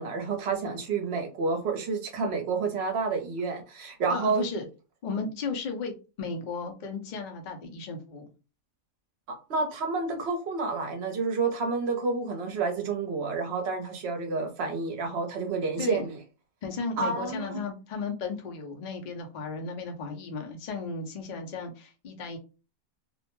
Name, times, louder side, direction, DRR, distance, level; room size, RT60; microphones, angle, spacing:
voice 1, 0.0-4.4 9.3-16.2 17.0-17.6, right 4 dB, 60° right, 0.8 m, -29 dB
voice 2, 4.1-4.7 5.0-8.3 15.8-16.1 16.6-22.4, left 4 dB, 55° left, 0.5 m, -35 dB
2.5 x 2.1 x 2.9 m
omnidirectional pair, 1.5 m